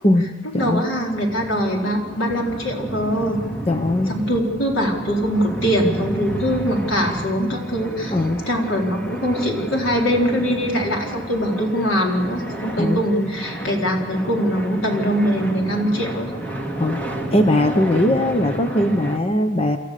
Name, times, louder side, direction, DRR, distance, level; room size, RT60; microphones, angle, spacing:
voice 1, 0.0-0.8 3.7-4.2 8.1-8.5 12.8-13.0 16.8-19.8, left 1 dB, 30° left, 7 dB, 0.8 m, -20 dB
voice 2, 0.6-3.4 4.1-8.1 8.5-16.3, equal, 80° left, 0 dB, 4.1 m, -22 dB
sound 1, 0.6-19.2, right 1 dB, 10° left, 2.1 m, -31 dB
28.0 x 14.0 x 6.7 m, 1.4 s
head